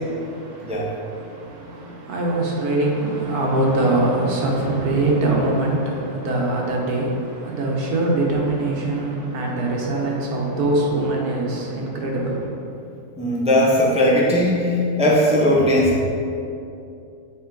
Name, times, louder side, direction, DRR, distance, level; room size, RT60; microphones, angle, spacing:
voice 1, 0.1-12.6, right 2 dB, 70° right, -2 dB, 1.5 m, -23 dB
voice 2, 13.2-16.0, left 1 dB, 10° right, -5 dB, 0.4 m, -18 dB
7.3 x 4.2 x 3.8 m, 2.6 s
omnidirectional pair, 1.7 m